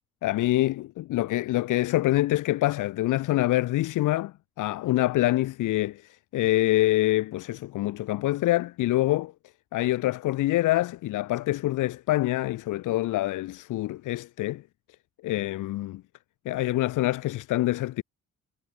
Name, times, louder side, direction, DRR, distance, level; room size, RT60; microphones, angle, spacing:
voice 1, 0.2-9.3 9.7-14.6 15.2-16.0 16.4-18.0, left 16 dB, 90° left, 2.7 m, -25 dB
cardioid pair, 90°, 30 cm